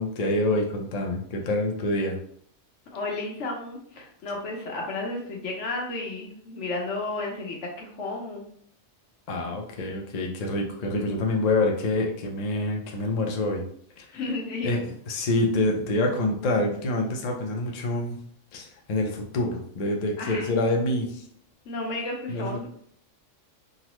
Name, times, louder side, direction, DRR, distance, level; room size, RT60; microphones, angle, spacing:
voice 1, 0.0-2.2 9.3-13.6 14.0-14.1 14.6-14.8 15.1-18.2 18.5-21.3 22.3-22.6, left 2 dB, 50° left, 0 dB, 0.5 m, -26 dB
voice 2, 2.9-8.4 14.1-14.7 20.2-20.5 21.7-22.7, left 2 dB, 70° left, 0 dB, 1.1 m, -32 dB
3.7 x 2.0 x 3.0 m, 0.62 s
omnidirectional pair, 1.3 m